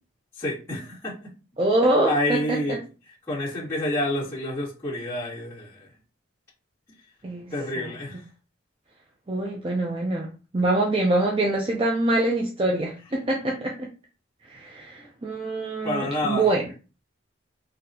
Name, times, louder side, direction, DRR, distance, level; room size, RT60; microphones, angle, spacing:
voice 1, 0.4-1.2 2.1-2.8 3.3-5.9 7.5-8.2 15.8-16.5, left 1 dB, 15° left, -11 dB, 1.8 m, -28 dB
voice 2, 1.6-2.8 7.2-7.9 9.3-13.9 14.5-16.6, right 2 dB, 25° right, 0 dB, 0.5 m, -25 dB
3.9 x 2.8 x 2.7 m, 0.33 s
head